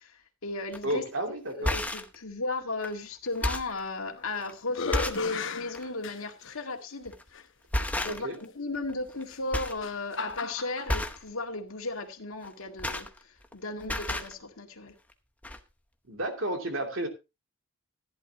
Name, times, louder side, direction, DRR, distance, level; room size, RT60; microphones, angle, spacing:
voice 1, 0.0-1.0 1.5-7.1 7.8-14.9, left 2 dB, 85° left, 1.9 m, -35 dB
sound 1, 0.7-0.9 1.5-2.1 2.8-2.9 3.3-3.8 4.4-4.5 4.9-5.3 5.7-5.9 7.0-7.3 7.7-8.4 8.7-9.2 9.5-9.8 10.1-10.4 10.9-11.3 12.4-13.5 13.8-14.3 15.1-15.2 15.4-15.6, left 1 dB, 5° left, 0.8 m, -32 dB
voice 2, 0.8-1.7 8.0-8.4 16.1-17.1, right 1 dB, 70° right, 2.8 m, -32 dB
sound 2, 3.9-4.3 4.7-6.6 7.3-7.4 9.2-10.9, left 5 dB, 60° left, 0.9 m, -36 dB
15.0 x 11.0 x 2.9 m
head